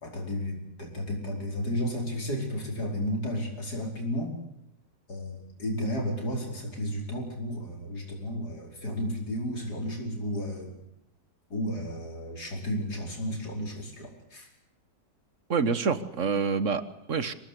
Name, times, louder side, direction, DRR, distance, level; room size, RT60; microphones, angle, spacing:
voice 1, 0.0-4.3 5.1-10.7 11.5-14.5, equal, 60° left, 0 dB, 5.5 m, -33 dB
voice 2, 15.5-17.3, right 5 dB, 45° right, 13 dB, 1.5 m, -27 dB
25.5 x 18.5 x 8.3 m, 0.82 s
omnidirectional pair, 1.9 m